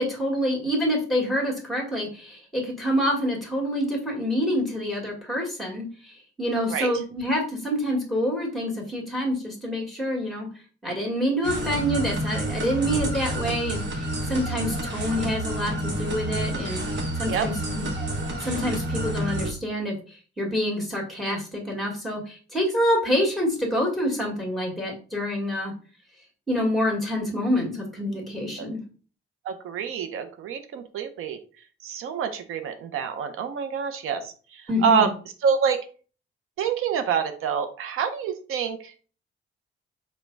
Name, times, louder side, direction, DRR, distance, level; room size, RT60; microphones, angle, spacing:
voice 1, 0.0-10.5 10.8-16.8 17.2-17.9 18.4-25.7 26.5-28.8 34.7-35.1, equal, ahead, 0 dB, 1.7 m, -27 dB
sound 1, 11.4-19.5, right 1 dB, 55° right, 1.1 m, -29 dB
voice 2, 29.4-31.4 31.8-35.1 35.4-35.8 36.6-38.9, right 7 dB, 85° right, 8 dB, 0.6 m, -26 dB
5.1 x 2.2 x 4.5 m, 0.38 s
cardioid pair, 135°, 21 cm